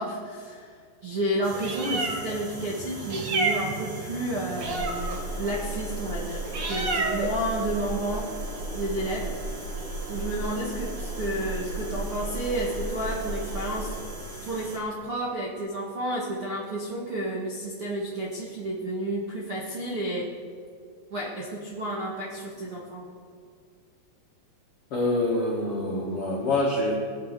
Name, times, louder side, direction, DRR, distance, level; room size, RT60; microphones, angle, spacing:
voice 1, 0.0-9.4 10.1-14.0 14.4-20.3 21.1-23.1, right 1 dB, 60° right, -5 dB, 1.4 m, -31 dB
sound 1, 1.4-14.8, right 1 dB, 40° right, 1.4 m, -42 dB
Meow, 1.4-14.0, right 2 dB, 80° right, 1.2 m, -32 dB
voice 2, 24.9-26.9, left 2 dB, 60° left, -4 dB, 1.4 m, -26 dB
20.5 x 7.4 x 6.7 m, 2.2 s
omnidirectional pair, 5.2 m